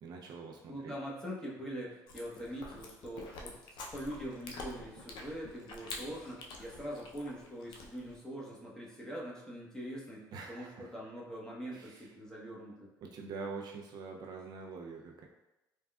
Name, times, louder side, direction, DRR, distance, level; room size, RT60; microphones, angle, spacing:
voice 1, 0.0-0.9 10.3-10.9 11.7-12.1 13.0-15.3, right 4 dB, 60° right, 0 dB, 0.4 m, -45 dB
voice 2, 0.7-3.6 3.9-12.9, equal, 5° left, -5 dB, 0.9 m, -43 dB
Chewing mastication, 2.1-8.2, left 3 dB, 70° left, 0.5 m, -48 dB
3.5 x 2.3 x 2.2 m, 0.97 s
supercardioid pair, 85°, 8 cm